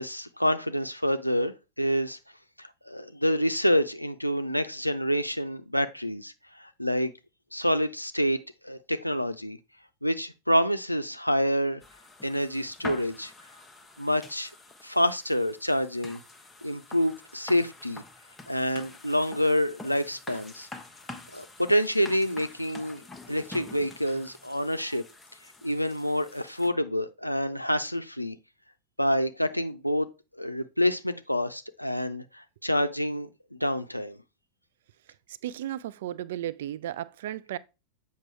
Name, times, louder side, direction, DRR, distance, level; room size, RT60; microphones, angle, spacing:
voice 1, 0.0-2.2 2.6-7.1 7.5-8.4 8.6-9.6 10.0-11.8 12.2-13.3 14.0-14.5 14.8-16.2 16.6-18.0 18.5-20.7 21.3-25.0 25.6-28.4 29.0-30.1 30.4-34.2, equal, 90° left, 0.5 m, -27 dB
sound 1, 11.8-26.7, left 3 dB, 10° left, 0.9 m, -46 dB
voice 2, 35.3-37.6, right 12 dB, 55° right, 0.4 m, -34 dB
7.5 x 5.6 x 3.2 m
figure-of-eight pair, 90°, 0 cm